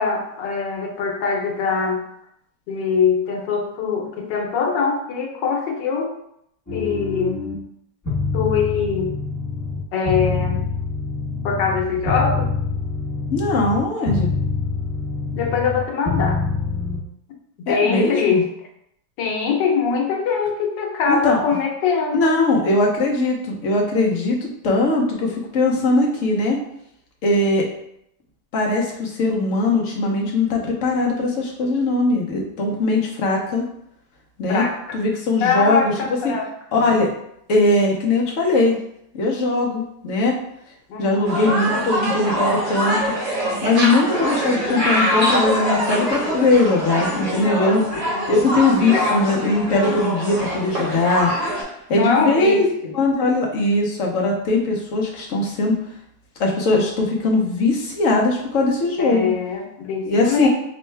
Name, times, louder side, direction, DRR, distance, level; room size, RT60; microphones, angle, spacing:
voice 1, 0.0-2.0 2.7-6.1 6.7-7.4 8.3-9.1 9.9-10.6 11.4-12.5 15.3-16.4 17.7-18.4 19.2-22.4 34.5-35.0 35.4-36.5 40.9-41.4 47.6-48.3 51.9-52.9 59.0-60.5, left 5 dB, 85° left, 1 dB, 1.4 m, -22 dB
sound 1, 6.7-7.5 8.0-9.8 10.0-13.8 14.0-15.8 16.0-17.0, left 4 dB, 15° left, 0.8 m, -25 dB
voice 2, 13.3-14.3 17.7-18.4 21.1-21.4 22.1-26.6 27.2-27.7 28.5-33.6 34.4-34.6 34.9-35.9 36.2-36.3 36.7-37.1 37.5-38.8 39.1-40.4 41.0-43.0 43.6-47.8 48.3-51.3 51.9-52.7 52.9-55.8 56.4-59.3 60.0-60.5, left 2 dB, 55° left, -1 dB, 0.9 m, -20 dB
sound 2, 41.2-51.6, equal, 65° right, 2.0 m, -23 dB
5.2 x 2.3 x 3.2 m, 0.75 s
omnidirectional pair, 1.9 m